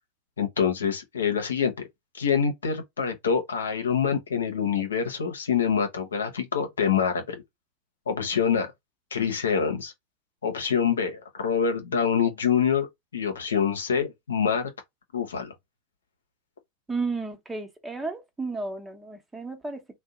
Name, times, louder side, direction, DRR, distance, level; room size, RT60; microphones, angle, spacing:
voice 1, 0.4-1.9 2.1-7.4 8.1-8.7 9.1-9.9 10.4-14.7 15.1-15.5, left 7 dB, 90° left, 0.8 m, -26 dB
voice 2, 16.9-20.0, right 3 dB, 15° right, 1.0 m, -33 dB
2.7 x 2.2 x 3.6 m
hypercardioid pair, 95°, 0 cm